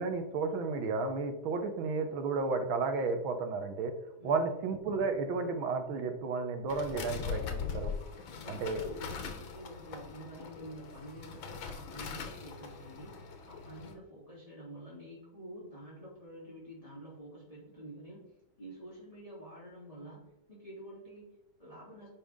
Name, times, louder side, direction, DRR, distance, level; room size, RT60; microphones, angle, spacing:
voice 1, 0.0-3.9 4.2-7.9 8.5-8.8, right 4 dB, 75° right, 6 dB, 1.8 m, -32 dB
sound 1, 6.7-13.9, left 5 dB, 75° left, 1.8 m, -41 dB
voice 2, 8.3-18.3 18.6-22.1, right 1 dB, 15° left, -7 dB, 2.9 m, -49 dB
10.0 x 4.9 x 3.7 m, 0.88 s
omnidirectional pair, 2.2 m